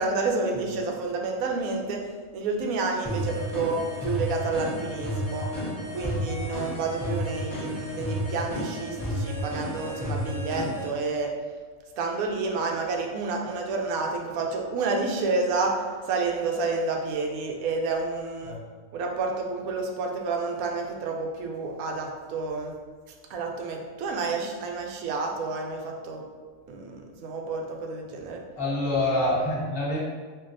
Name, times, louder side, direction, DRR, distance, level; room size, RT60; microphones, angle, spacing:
voice 1, 0.0-5.5 5.9-11.3 12.0-18.6 18.9-22.7 23.3-26.2 26.7-28.4, right 3 dB, 80° right, 1 dB, 1.0 m, -29 dB
sound 1, 3.0-10.9, equal, 25° left, 0.4 m, -31 dB
voice 2, 28.6-30.0, left 1 dB, 45° left, -6 dB, 1.1 m, -26 dB
4.5 x 2.4 x 2.5 m, 1.5 s
omnidirectional pair, 1.5 m